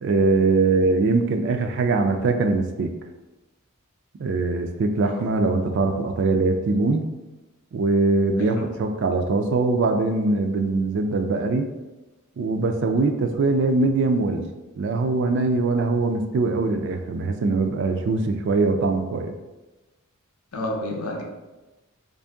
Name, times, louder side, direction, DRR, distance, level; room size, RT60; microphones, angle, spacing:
voice 1, 0.0-2.9 4.2-7.1 7.7-11.7 12.4-14.5 14.8-19.3, right 3 dB, 55° right, 5 dB, 0.3 m, -22 dB
voice 2, 20.5-21.2, left 1 dB, 85° left, 0 dB, 0.7 m, -30 dB
3.5 x 2.6 x 3.4 m, 1.1 s
head